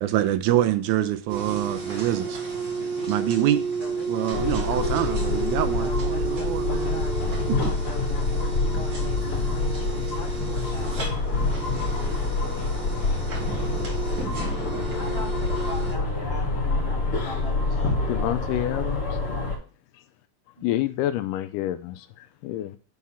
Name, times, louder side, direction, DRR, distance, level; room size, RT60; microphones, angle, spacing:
voice 1, 0.0-2.4 3.1-3.6 4.1-7.1 7.6-7.8, right 12 dB, 80° right, 1.9 m, -25 dB
sound 1, 1.3-15.9, right 4 dB, 40° right, 1.9 m, -32 dB
Speech synthesizer, 2.7-11.1, left 6 dB, 65° left, 2.1 m, -41 dB
sound 2, 4.3-19.6, left 3 dB, 45° left, 2.4 m, -27 dB
voice 2, 9.5-10.1 10.5-11.1 14.6-18.4 19.2-19.4 20.6-21.0, left 1 dB, 25° right, 1.4 m, -40 dB
voice 3, 18.1-19.2 20.6-22.8, left 13 dB, 80° left, 2.1 m, -28 dB
9.4 x 3.6 x 5.6 m
omnidirectional pair, 3.9 m